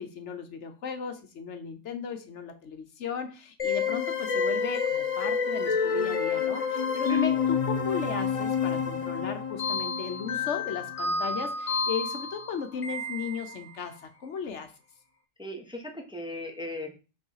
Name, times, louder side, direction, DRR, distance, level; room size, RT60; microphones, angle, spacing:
voice 1, 0.0-14.7, left 6 dB, 65° left, 7 dB, 1.1 m, -36 dB
sound 1, 3.6-13.8, left 5 dB, 35° left, 0.6 m, -29 dB
voice 2, 15.4-17.0, left 1 dB, 5° right, 2 dB, 0.9 m, -38 dB
5.4 x 3.9 x 5.5 m, 0.33 s
omnidirectional pair, 1.3 m